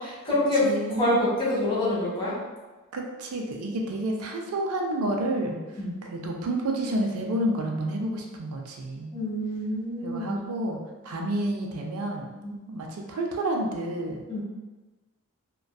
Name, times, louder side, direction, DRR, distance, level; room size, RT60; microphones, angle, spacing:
voice 1, 0.0-2.4 5.8-6.0 9.1-10.4 11.1-11.2 12.4-12.5 14.3-14.4, left 1 dB, 20° left, -10 dB, 1.1 m, -26 dB
voice 2, 0.6-1.2 2.9-5.6 6.1-9.1 10.0-10.8 11.0-12.3 12.7-14.4, right 1 dB, 75° right, 1 dB, 0.4 m, -29 dB
2.5 x 2.2 x 2.2 m, 1.2 s
head